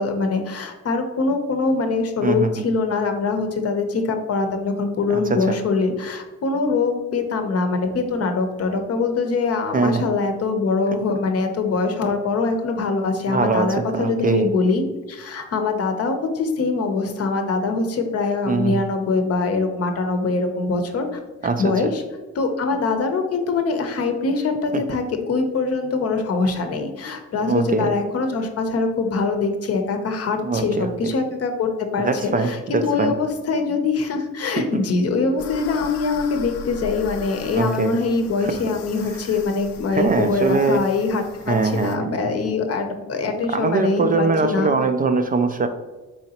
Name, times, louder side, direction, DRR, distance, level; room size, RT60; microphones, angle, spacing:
voice 1, 0.0-21.2 21.6-22.0 22.3-44.7, left 4 dB, 50° left, 5 dB, 0.7 m, -23 dB
voice 2, 2.2-2.6 5.1-5.6 9.7-10.0 13.3-14.5 18.5-18.8 21.4-21.9 24.7-24.8 27.4-27.9 30.4-30.9 32.0-33.1 34.6-34.7 37.5-38.0 38.4-38.5 39.9-40.9 41.5-42.3 43.5-45.7, right 4 dB, 30° right, 7 dB, 0.4 m, -22 dB
sound 1, 35.4-42.0, left 7 dB, 90° left, 0.5 m, -40 dB
4.3 x 3.8 x 2.8 m, 1.2 s
cardioid pair, 90°, 30 cm